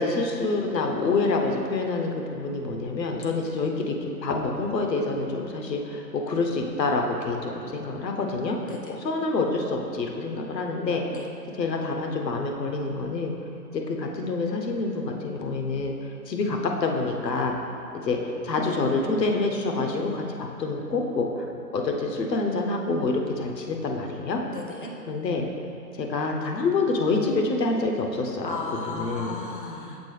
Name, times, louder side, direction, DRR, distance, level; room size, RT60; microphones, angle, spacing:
voice 1, 0.0-8.6 8.9-11.0 11.5-13.3 13.7-17.5 18.0-24.4 25.1-25.4 26.0-28.6 28.9-29.3, left 3 dB, 85° left, 2 dB, 0.9 m, -27 dB
voice 2, 8.6-8.9 11.1-11.3 24.5-24.9 28.4-30.0, left 3 dB, 35° left, 0 dB, 0.4 m, -35 dB
7.5 x 3.8 x 3.3 m, 2.7 s
hypercardioid pair, 150°, 48 cm